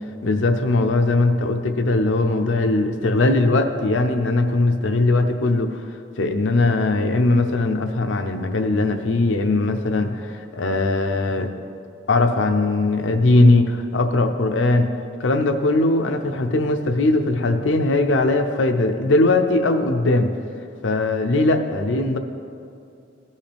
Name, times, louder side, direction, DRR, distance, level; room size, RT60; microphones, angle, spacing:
voice 1, 0.2-5.8 6.2-11.5 12.1-14.9 15.2-20.3 20.8-22.2, left 2 dB, 85° left, 6 dB, 0.6 m, -20 dB
14.5 x 5.5 x 3.4 m, 2.4 s
head